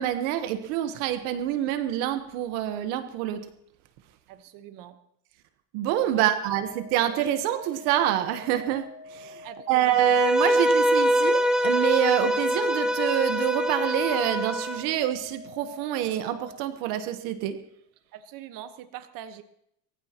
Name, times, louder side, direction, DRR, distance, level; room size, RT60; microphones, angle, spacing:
voice 1, 0.0-3.5 5.7-17.6, right 12 dB, 65° right, 10 dB, 1.2 m, -26 dB
voice 2, 4.3-5.0 6.1-6.3 9.4-10.1 18.1-19.4, right 11 dB, 50° right, 9 dB, 1.2 m, -42 dB
sound 1, 6.6-16.6, left 3 dB, 20° right, 1.4 m, -46 dB
Bowed string instrument, 9.9-14.8, equal, ahead, 0.6 m, -24 dB
22.0 x 15.0 x 2.9 m, 0.73 s
supercardioid pair, 135°, 45 cm